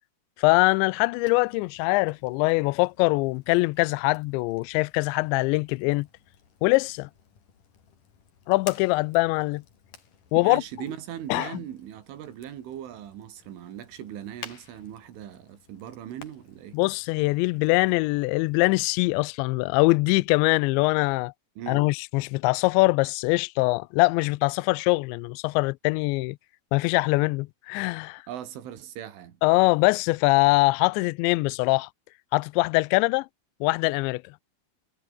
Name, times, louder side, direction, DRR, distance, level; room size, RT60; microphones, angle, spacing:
voice 1, 0.4-6.1 6.6-7.1 8.5-9.6 10.3-10.6 11.3-11.5 16.7-21.3 21.7-26.4 26.7-28.2 29.4-31.9 32.3-33.3 33.6-34.2, left 24 dB, 80° left, 2.7 m, -23 dB
Fire, 1.2-19.2, left 6 dB, 45° left, 5.0 m, -52 dB
voice 2, 10.4-16.8 21.6-21.9 28.3-29.4, right 10 dB, 80° right, 5.0 m, -39 dB
omnidirectional pair, 5.5 m